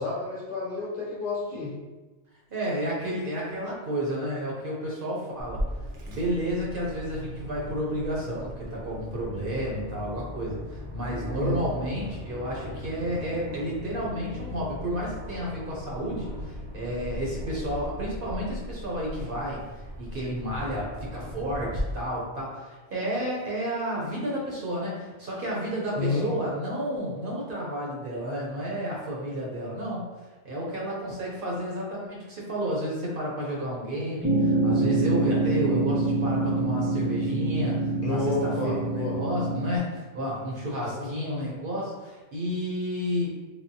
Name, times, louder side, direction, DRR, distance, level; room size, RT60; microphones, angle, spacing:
voice 1, 0.0-1.7 11.4-11.6 26.0-26.3 38.0-39.2 40.8-41.1, left 3 dB, 55° left, -4 dB, 0.7 m, -30 dB
voice 2, 2.5-5.6 6.1-19.6 20.0-30.0 30.4-43.4, equal, 55° right, -4 dB, 0.8 m, -31 dB
Aircraft, 5.4-21.8, left 1 dB, 80° right, 1.0 m, -38 dB
sound 1, 34.2-39.8, right 2 dB, 35° right, 0.3 m, -25 dB
3.3 x 2.0 x 2.6 m, 1.2 s
omnidirectional pair, 1.2 m